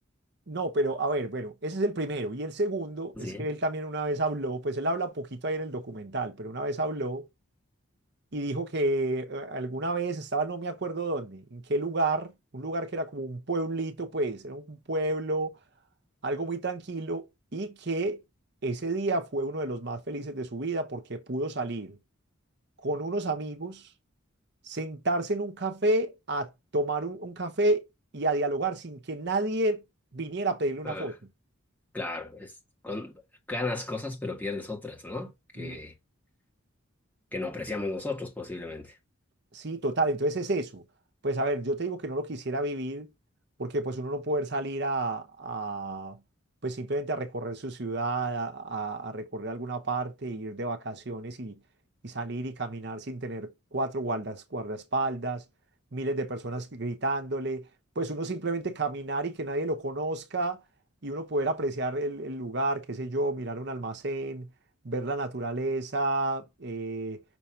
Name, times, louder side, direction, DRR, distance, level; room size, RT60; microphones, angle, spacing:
voice 1, 0.5-7.3 8.3-15.6 16.2-17.3 17.5-18.2 18.6-22.0 22.8-23.8 24.6-27.9 28.1-29.8 30.1-31.1 35.6-35.8 39.5-40.8 41.2-43.1 43.6-46.2 46.6-51.5 52.0-55.4 55.9-57.7 58.0-60.6 61.0-64.5 64.8-67.2, right 2 dB, 55° right, 1.0 m, -30 dB
voice 2, 3.2-3.5 30.8-31.1 31.9-32.5 32.8-33.1 33.5-35.9 37.3-38.9, left 2 dB, 10° left, 1.5 m, -35 dB
6.1 x 3.0 x 5.6 m
head